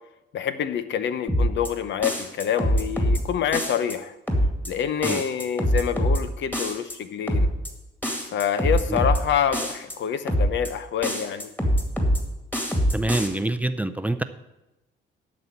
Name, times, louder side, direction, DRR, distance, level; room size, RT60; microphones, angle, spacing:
voice 1, 0.3-4.1 4.6-7.5 8.3-11.5, left 8 dB, 70° left, 12 dB, 0.8 m, -26 dB
sound 1, 1.3-1.7 2.0-3.2 3.5-3.9 4.3-4.7 5.0-6.2 6.5-6.9 7.3-7.7 8.0-9.2 9.5-9.9 10.3-10.7 11.0-12.2 12.5-13.3, equal, 10° left, 2.1 m, -23 dB
voice 2, 12.9-14.2, right 1 dB, 5° right, 10 dB, 0.5 m, -25 dB
12.0 x 4.3 x 8.1 m, 0.97 s
cardioid pair, 90°, 20 cm